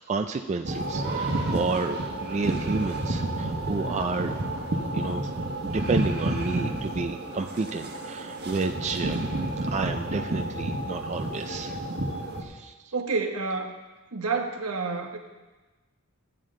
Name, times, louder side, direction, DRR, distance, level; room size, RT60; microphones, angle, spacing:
voice 1, 0.1-4.4 4.9-5.3 5.6-9.2 9.7-11.8 12.4-12.9, right 3 dB, 30° right, 6 dB, 0.4 m, -31 dB
sound 1, 0.6-12.4, right 1 dB, 50° right, 1.3 m, -30 dB
voice 2, 12.9-13.8 14.1-15.2, right 4 dB, 80° right, 3 dB, 1.2 m, -29 dB
14.0 x 9.1 x 3.8 m, 1.2 s
head